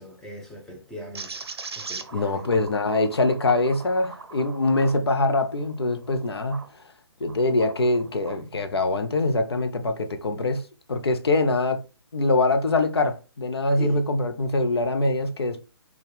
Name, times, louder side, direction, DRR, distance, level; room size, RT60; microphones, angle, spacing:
voice 1, 0.0-1.3 1.8-2.5 13.8-14.0, equal, 5° left, 0.6 m, -40 dB
sound 1, 1.1-6.7 7.2-8.4, right 4 dB, 75° right, 0.5 m, -41 dB
voice 2, 2.1-6.6 7.2-10.6 10.9-11.8 12.1-15.6, left 2 dB, 75° left, 0.6 m, -23 dB
4.3 x 2.3 x 3.3 m
figure-of-eight pair, 135°, 13 cm